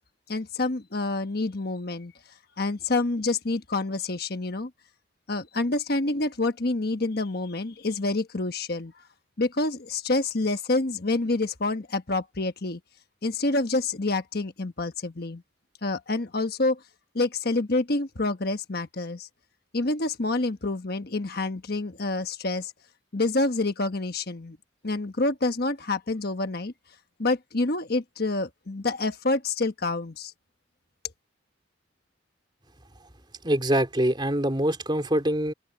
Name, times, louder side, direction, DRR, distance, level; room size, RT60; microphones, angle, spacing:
voice 1, 0.3-2.1 2.6-4.7 5.3-8.9 9.4-12.8 13.2-15.4 15.8-16.8 17.1-19.3 19.7-22.7 23.1-24.6 24.8-26.7 27.2-30.3, left 2 dB, 50° left, 1.3 m, -27 dB
voice 2, 33.4-35.5, right 1 dB, 25° right, 3.4 m, -24 dB
head